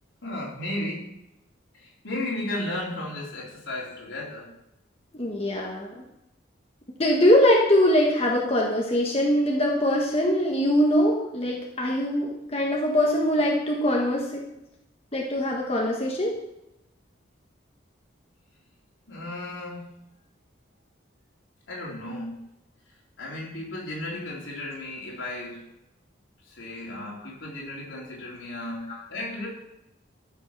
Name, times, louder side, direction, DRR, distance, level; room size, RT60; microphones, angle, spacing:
voice 1, 0.2-1.1 1.7-4.5 19.1-19.9 21.7-22.5 23.2-25.7 26.5-29.5, left 1 dB, 75° left, -3 dB, 3.5 m, -34 dB
voice 2, 5.2-5.9 7.0-14.4 15.1-16.3 28.9-29.0, left 1 dB, 30° left, -2 dB, 1.3 m, -22 dB
14.0 x 5.6 x 5.7 m, 0.88 s
head